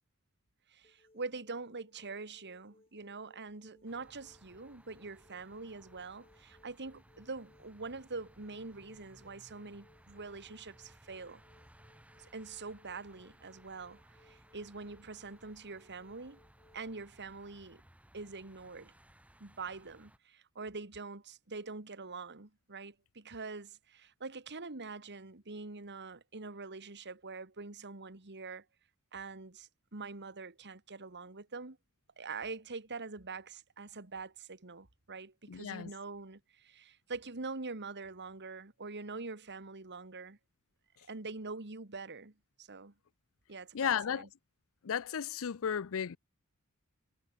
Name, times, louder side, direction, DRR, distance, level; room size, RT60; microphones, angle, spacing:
voice 1, 0.7-11.4 12.2-16.4 16.7-17.8 18.1-18.9 19.4-28.6 29.1-31.8 32.2-40.4 41.1-42.9 43.5-44.3, right 4 dB, 50° right, 2.1 m, -44 dB
sound 1, 0.8-16.8, left 2 dB, 25° left, 6.3 m, -67 dB
sound 2, 3.9-20.2, right 1 dB, 5° right, 2.6 m, -62 dB
voice 2, 35.5-35.9 43.7-44.2 44.8-46.2, left 8 dB, 65° left, 0.5 m, -34 dB
head